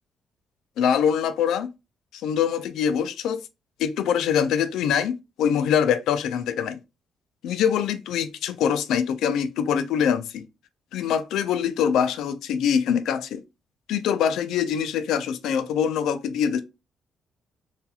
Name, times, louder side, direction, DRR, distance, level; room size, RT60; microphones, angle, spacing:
voice 1, 0.8-1.7 2.1-3.4 3.8-6.8 7.4-10.4 10.9-13.4 13.9-16.6, left 8 dB, 85° left, 0.3 m, -24 dB
2.4 x 2.3 x 2.7 m
cardioid pair, 90°, 0 cm